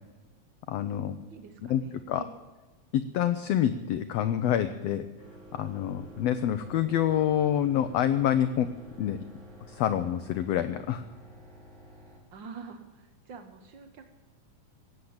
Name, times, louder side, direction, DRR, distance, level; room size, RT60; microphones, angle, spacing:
voice 1, 0.7-1.2 1.7-1.8 2.1-2.2 2.9-5.1 5.5-8.7 9.0-9.2 9.7-11.0, left 10 dB, 85° left, 11 dB, 1.4 m, -27 dB
voice 2, 1.3-2.3 12.3-14.1, right 5 dB, 90° right, 7 dB, 1.0 m, -46 dB
sound 1, 5.2-12.2, right 1 dB, 65° right, 5.0 m, -50 dB
17.5 x 8.0 x 8.6 m, 1.2 s
omnidirectional pair, 3.7 m